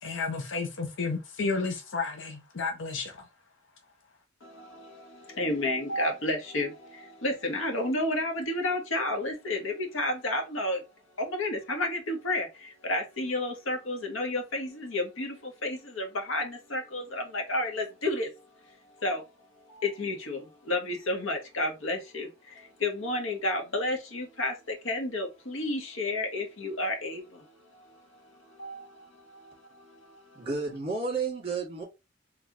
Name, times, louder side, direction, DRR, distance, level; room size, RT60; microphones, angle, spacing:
voice 1, 0.0-3.3, left 4 dB, 65° left, 0.7 m, -32 dB
voice 2, 4.4-10.8 11.2-18.3 18.6-19.3 19.7-30.4, left 2 dB, 90° left, 1.2 m, -32 dB
voice 3, 30.4-31.8, right 4 dB, 30° right, 1.9 m, -31 dB
3.7 x 3.2 x 2.9 m
head